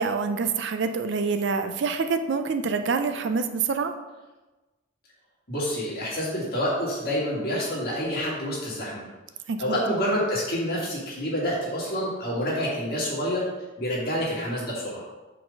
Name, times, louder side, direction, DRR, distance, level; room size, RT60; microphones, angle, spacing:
voice 1, 0.0-3.9 9.5-9.8, right 4 dB, 55° right, 8 dB, 0.4 m, -26 dB
voice 2, 5.5-9.0 9.6-13.4 13.8-15.0, equal, 45° left, -5 dB, 1.9 m, -28 dB
4.6 x 4.0 x 5.1 m, 1.2 s
head